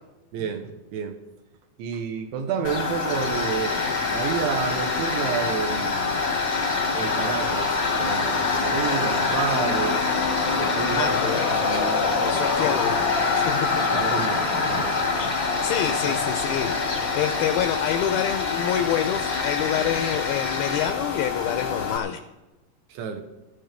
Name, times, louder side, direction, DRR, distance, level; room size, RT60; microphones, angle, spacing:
voice 1, 0.3-1.2 1.8-3.8 4.1-6.2 6.9-10.0 10.6-11.4 13.9-15.0 16.0-16.2 22.9-23.2, right 7 dB, 80° right, 6 dB, 3.4 m, -30 dB
Tools, 2.6-22.0, left 4 dB, 65° left, 0.8 m, -25 dB
voice 2, 10.9-11.6 12.2-13.4 15.2-15.3 15.6-22.2, left 10 dB, 85° left, 7 dB, 2.2 m, -27 dB
18.0 x 14.0 x 3.5 m, 1.0 s
omnidirectional pair, 5.1 m